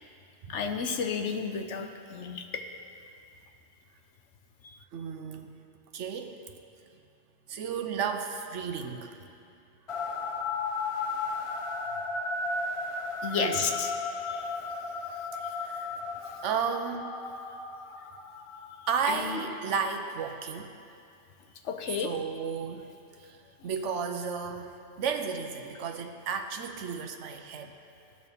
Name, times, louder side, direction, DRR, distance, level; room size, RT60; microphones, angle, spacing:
voice 1, 0.5-2.4 13.2-13.9 14.3-14.4 19.1-19.4 21.7-22.1, left 6 dB, 75° left, 5 dB, 1.1 m, -31 dB
voice 2, 4.9-5.6 5.9-6.3 7.5-9.2 13.3-13.6 15.3-15.9 16.4-17.1 18.9-20.7 22.0-22.9 23.6-24.7 25.0-27.7, right 6 dB, 85° right, 6 dB, 1.0 m, -33 dB
sound 1, 9.9-19.3, left 3 dB, 55° left, 0.3 m, -35 dB
17.0 x 6.3 x 3.5 m, 2.5 s
omnidirectional pair, 1.2 m